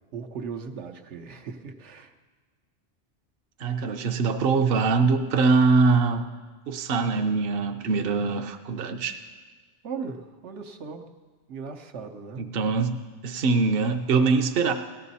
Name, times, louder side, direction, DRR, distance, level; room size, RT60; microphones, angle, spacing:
voice 1, 0.1-2.1 9.8-11.1 11.5-12.5, right 5 dB, 80° right, 4 dB, 1.2 m, -37 dB
voice 2, 3.6-6.2 6.7-9.2 12.4-14.7, right 4 dB, 60° right, 6 dB, 0.9 m, -23 dB
17.5 x 12.0 x 4.1 m, 1.4 s
omnidirectional pair, 1.2 m